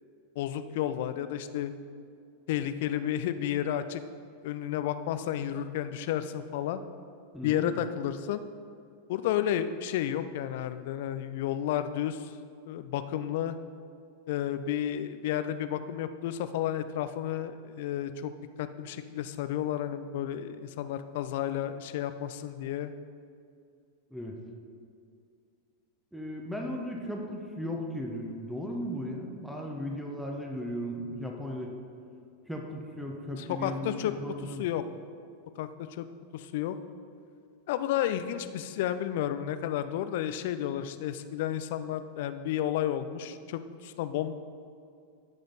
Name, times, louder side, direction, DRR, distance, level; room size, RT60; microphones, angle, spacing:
voice 1, 0.4-1.7 2.5-4.0 4.4-6.8 7.4-8.4 9.1-12.3 12.7-13.6 14.3-18.3 18.6-22.9 33.4-34.1 34.4-34.8 35.6-36.1 36.3-36.8 37.7-44.3, left 11 dB, 50° left, 11 dB, 0.4 m, -32 dB
voice 2, 7.3-7.7 24.1-24.3 26.1-31.7 32.5-34.6, equal, ahead, 0 dB, 1.0 m, -36 dB
14.0 x 5.0 x 4.0 m, 2.4 s
figure-of-eight pair, 90°, 0 cm